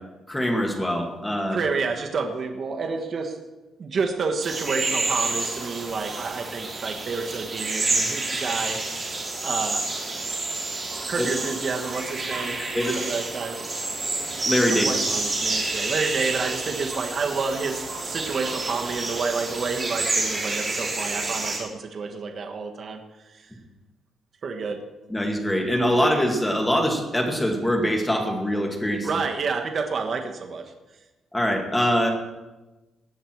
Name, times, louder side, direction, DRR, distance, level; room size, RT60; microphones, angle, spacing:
voice 1, 0.3-1.6 11.2-11.3 12.6-13.0 14.5-14.9 25.1-29.1 31.3-32.1, equal, 10° left, 2 dB, 2.1 m, -23 dB
voice 2, 1.5-3.4 3.8-8.8 9.4-9.9 11.1-12.6 12.9-13.6 14.7-23.0 23.3-23.5 24.4-24.8 29.0-30.7, right 4 dB, 45° right, 4 dB, 1.3 m, -29 dB
sound 1, 4.4-21.6, right 3 dB, 25° right, 3.5 m, -29 dB
17.5 x 9.8 x 4.6 m, 1.1 s
cardioid pair, 140°, 0 cm